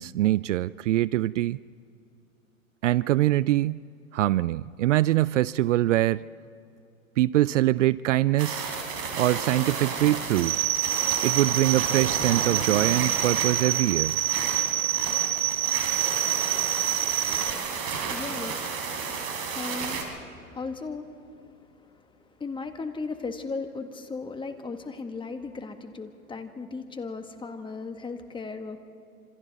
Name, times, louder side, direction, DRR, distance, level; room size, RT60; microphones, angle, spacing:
voice 1, 0.0-1.6 2.8-3.8 4.1-6.2 7.2-8.7 9.1-10.6 11.2-14.2, right 15 dB, 60° right, 0.5 m, -23 dB
sound 1, 8.4-20.0, right 5 dB, 40° right, 4.4 m, -32 dB
sound 2, 10.4-17.5, right 13 dB, 20° right, 0.9 m, -27 dB
voice 2, 16.1-28.8, left 4 dB, 10° left, 1.6 m, -38 dB
27.0 x 27.0 x 4.1 m
hypercardioid pair, 115°, 42 cm